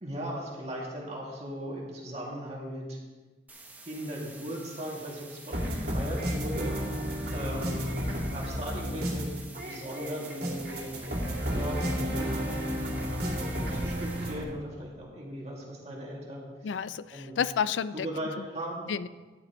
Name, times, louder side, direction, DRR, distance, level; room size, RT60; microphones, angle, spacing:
voice 1, 0.0-3.0 3.9-6.8 7.3-7.9 8.3-9.3 9.6-11.0 11.3-12.9 13.6-16.5 17.1-17.4 17.9-18.9, equal, 35° right, -3 dB, 2.3 m, -38 dB
sound 1, 3.5-14.4, right 3 dB, 10° right, 0.8 m, -50 dB
sound 2, 5.5-14.4, equal, 55° right, 2.6 m, -32 dB
voice 2, 16.6-18.1 18.9-19.1, left 7 dB, 80° left, 15 dB, 0.4 m, -30 dB
12.5 x 11.0 x 3.1 m, 1.3 s
head